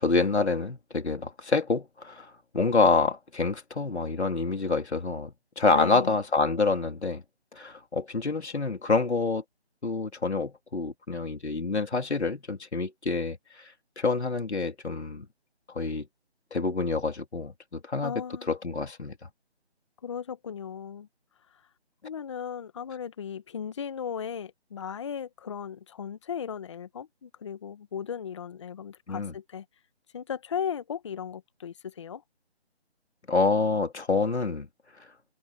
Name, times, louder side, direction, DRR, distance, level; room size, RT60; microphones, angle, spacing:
voice 1, 0.0-7.2 7.5-9.4 9.8-13.6 14.0-15.3 15.7-16.1 16.5-18.1 18.5-19.1 29.1-29.3 33.3-34.7, left 3 dB, 80° left, 3.3 m, -27 dB
voice 2, 5.7-6.2 18.0-18.5 20.0-21.1 21.5-21.6 22.0-29.6 30.1-32.2, left 8 dB, 25° left, 1.3 m, -36 dB
figure-of-eight pair, 165°, 33 cm